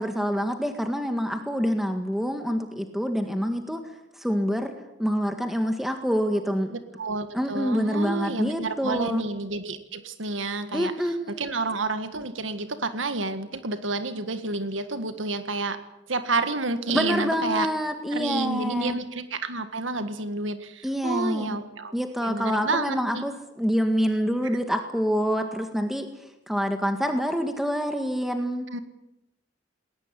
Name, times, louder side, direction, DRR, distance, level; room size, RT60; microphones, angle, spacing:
voice 1, 0.0-3.8 4.2-4.7 5.0-6.8 7.3-9.2 10.7-11.6 16.9-19.0 20.8-21.6 21.9-26.1 26.5-28.8, equal, ahead, 5 dB, 1.8 m, -26 dB
voice 2, 6.7-15.8 16.1-17.7 18.1-21.9 22.2-23.2 28.7-28.8, right 3 dB, 85° right, 10 dB, 1.8 m, -30 dB
20.5 x 18.5 x 10.0 m, 0.89 s
head